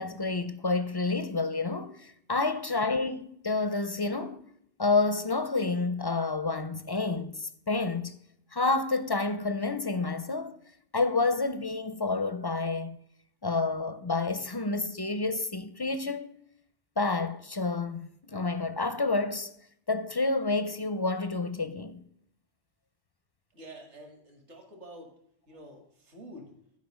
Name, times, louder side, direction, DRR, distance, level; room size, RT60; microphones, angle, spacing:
voice 1, 0.0-4.4 4.8-8.2 8.5-10.6 10.9-13.0 13.4-16.3 17.0-19.5 19.9-22.0, left 3 dB, 30° left, 0.4 m, -29 dB
voice 2, 23.5-25.1 25.5-26.5, right 1 dB, 75° right, 2.4 m, -48 dB
11.5 x 5.3 x 6.3 m
omnidirectional pair, 1.2 m